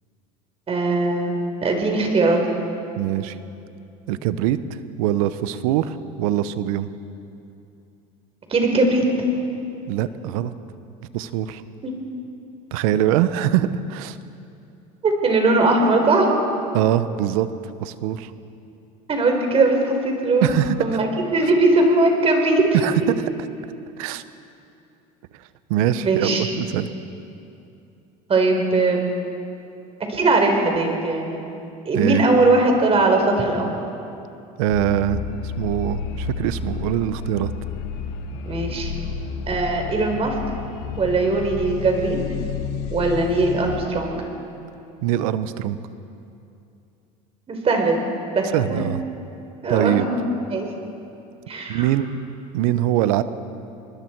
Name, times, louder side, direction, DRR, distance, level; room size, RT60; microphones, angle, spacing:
voice 1, 0.7-1.3 1.6-2.4 8.5-9.0 11.8-11.9 15.0-16.3 19.1-20.5 20.8-22.6 26.0-26.5 28.3-29.1 30.1-31.3 31.8-33.7 38.4-38.9 39.5-40.3 41.0-42.2 42.9-44.2 47.5-48.0 48.3-48.9 49.6-50.1 50.5-50.7 51.5-51.9, right 2 dB, 35° right, 2 dB, 4.6 m, -20 dB
voice 2, 3.0-3.4 4.1-6.9 9.9-10.5 11.1-11.6 12.7-14.2 16.7-17.5 17.8-18.3 20.4-21.0 22.7-22.9 24.0-24.2 25.7-26.9 31.9-32.2 34.6-37.5 45.0-45.8 48.5-49.0 49.7-50.1 51.7-52.2 52.5-53.2, right 12 dB, 80° right, 13 dB, 1.0 m, -23 dB
sound 1, 34.7-43.9, left 6 dB, 70° left, 1.4 m, -31 dB
27.0 x 20.5 x 4.7 m, 2.7 s
supercardioid pair, 90°, 18 cm